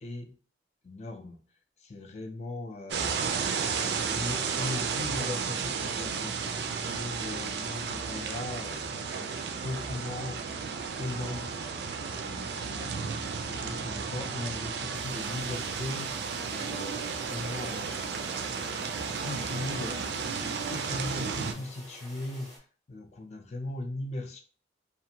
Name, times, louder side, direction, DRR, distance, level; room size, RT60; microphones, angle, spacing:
voice 1, 0.0-0.3 0.8-1.4 1.8-10.7 11.0-11.5 11.9-18.8 19.2-20.0 20.4-22.6 22.9-24.4, left 2 dB, 35° left, 4 dB, 0.4 m, -39 dB
sound 1, 2.9-21.5, right 5 dB, 65° right, 0.4 m, -33 dB
sound 2, 14.9-22.6, equal, ahead, 0.6 m, -50 dB
2.5 x 2.5 x 2.8 m, 0.41 s
head